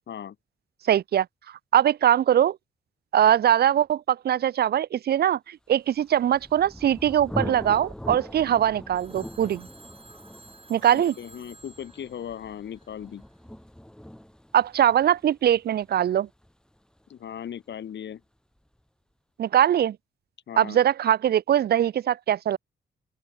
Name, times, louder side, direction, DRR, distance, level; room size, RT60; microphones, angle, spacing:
voice 1, 0.9-1.3 1.7-2.6 3.1-9.7 10.7-11.1 14.5-16.3 19.4-20.0 20.6-22.6, right 10 dB, 60° right, 0.4 m, -22 dB
Thunder, 6.0-17.5, equal, 5° left, 2.1 m, -41 dB
Telephone, 8.9-13.2, right 4 dB, 30° right, 3.9 m, -53 dB
voice 2, 10.9-13.2 17.1-18.2 20.5-20.8, left 9 dB, 75° left, 2.2 m, -37 dB
open air
cardioid pair, 90°, 19 cm